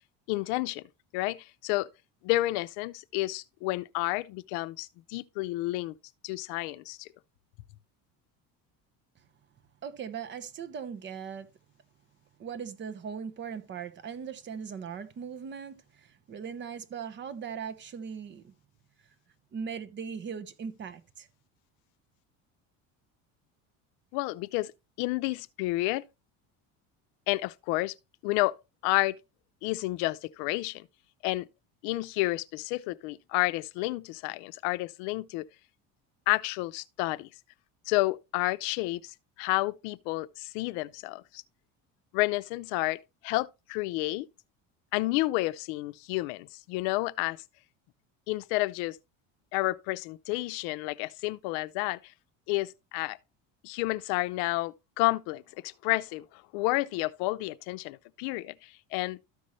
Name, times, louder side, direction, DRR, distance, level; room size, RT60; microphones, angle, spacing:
voice 1, 0.3-0.8 1.1-1.9 2.2-5.9 6.2-7.1 24.1-24.7 25.0-26.0 27.3-27.9 28.2-28.5 28.8-29.2 29.6-30.9 31.2-31.5 31.8-35.4 36.3-37.3 37.9-41.4 42.1-43.0 43.2-44.3 44.9-47.4 48.3-49.0 49.5-52.0 52.5-53.2 53.6-59.2, left 20 dB, 85° left, 0.6 m, -30 dB
voice 2, 9.8-11.5 12.4-18.5 19.5-21.3, right 7 dB, 35° right, 1.0 m, -39 dB
13.0 x 5.5 x 3.1 m
cardioid pair, 140°, 33 cm